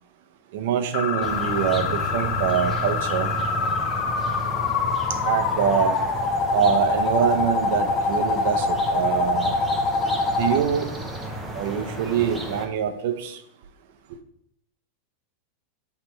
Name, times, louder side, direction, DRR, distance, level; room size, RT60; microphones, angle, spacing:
voice 1, 0.5-3.3 5.2-6.0 6.5-9.5 10.4-10.9 11.5-13.4, right 8 dB, 55° right, 8 dB, 0.7 m, -24 dB
sound 1, 0.9-10.6, left 4 dB, 35° left, 0.6 m, -25 dB
sound 2, 1.2-12.7, right 1 dB, 5° right, 0.7 m, -33 dB
7.9 x 3.2 x 4.4 m, 0.73 s
supercardioid pair, 170°, 0 cm